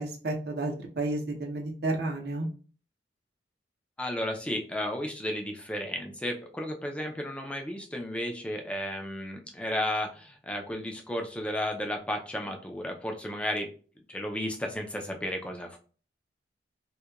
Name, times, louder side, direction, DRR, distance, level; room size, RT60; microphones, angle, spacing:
voice 1, 0.0-2.5, right 2 dB, 65° right, 2 dB, 0.6 m, -31 dB
voice 2, 4.0-13.7 14.1-15.8, left 1 dB, 5° left, 2 dB, 0.3 m, -33 dB
2.8 x 2.1 x 2.3 m, 0.40 s
head